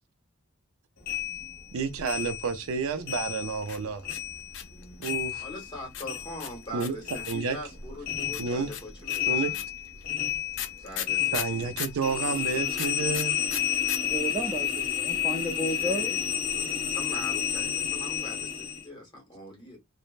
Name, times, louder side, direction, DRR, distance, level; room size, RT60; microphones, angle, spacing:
sound 1, 1.1-3.8 4.0-6.8 7.0-18.8, left 10 dB, 45° left, 0.8 m, -31 dB
voice 1, 1.7-4.0 5.0-5.5 6.7-7.0 7.3-7.6 8.4-8.7 9.3-9.5 11.3-13.4, right 5 dB, 85° right, 0.5 m, -30 dB
sound 2, 3.6-5.3 5.9-7.5 8.3-12.0 12.7-14.0 14.2-14.3 14.5-15.0, left 9 dB, 60° left, 0.5 m, -36 dB
voice 2, 5.4-9.6 10.8-11.8 15.7-19.8, left 1 dB, 20° left, 1.2 m, -42 dB
voice 3, 14.0-16.1, right 1 dB, 15° right, 0.4 m, -32 dB
3.1 x 2.1 x 2.4 m
head